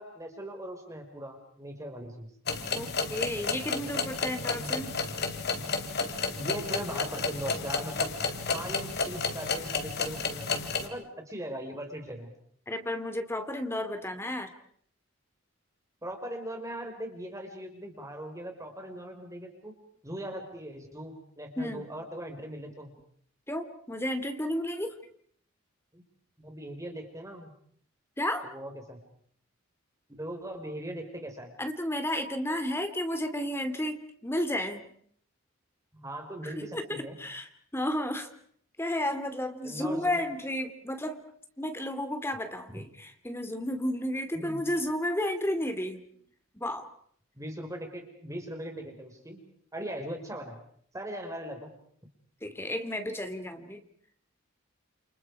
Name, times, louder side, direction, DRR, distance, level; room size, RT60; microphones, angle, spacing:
voice 1, 0.0-2.3 4.0-4.7 6.3-8.1 8.5-12.3 16.0-19.8 20.0-22.9 25.9-26.0 26.4-27.5 28.4-29.0 30.1-31.5 35.9-37.2 39.6-40.3 42.7-42.8 44.3-44.6 47.3-49.4 49.7-50.6 50.9-51.7, right 1 dB, 15° right, 4 dB, 4.9 m, -40 dB
sound 1, 2.5-10.9, left 4 dB, 55° left, 3.2 m, -32 dB
voice 2, 2.7-5.0 12.7-14.5 21.6-21.9 23.5-24.9 28.2-28.5 31.6-34.9 36.4-38.3 38.8-41.2 41.6-46.0 46.5-46.9 52.4-53.8, left 1 dB, 10° left, 8 dB, 2.7 m, -32 dB
29.5 x 29.0 x 4.9 m, 0.62 s
head